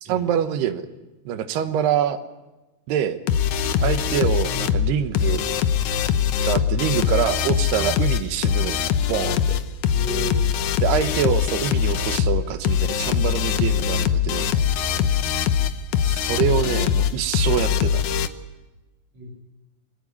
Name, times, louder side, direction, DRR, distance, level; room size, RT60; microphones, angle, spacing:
voice 1, 0.0-0.8 1.3-2.2 2.9-3.2 3.8-5.4 6.4-8.8 9.1-9.6 10.8-14.5 16.0-18.0, right 9 dB, 75° right, 9 dB, 3.2 m, -25 dB
sound 1, 3.3-18.3, left 8 dB, 85° left, 1.7 m, -22 dB
voice 2, 9.9-10.5 14.8-15.1 19.1-19.4, equal, 40° right, -4 dB, 4.7 m, -34 dB
23.5 x 18.0 x 9.8 m, 1.1 s
omnidirectional pair, 4.8 m